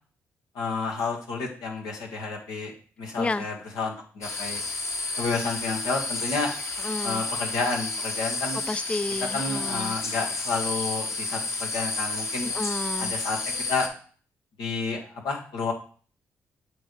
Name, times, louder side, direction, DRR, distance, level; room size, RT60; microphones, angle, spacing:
voice 1, 0.5-2.7 3.0-4.6 5.2-6.5 7.0-8.6 9.3-12.5 13.0-13.4 13.7-13.9 14.6-15.7, left 4 dB, 75° left, 1 dB, 1.6 m, -30 dB
voice 2, 3.2-3.5 6.8-7.2 8.7-9.9 12.4-13.1, left 2 dB, 15° left, 16 dB, 0.4 m, -31 dB
sound 1, 4.2-13.9, left 3 dB, 45° left, 1.6 m, -31 dB
7.9 x 3.2 x 4.7 m, 0.42 s
hypercardioid pair, 45°, 7 cm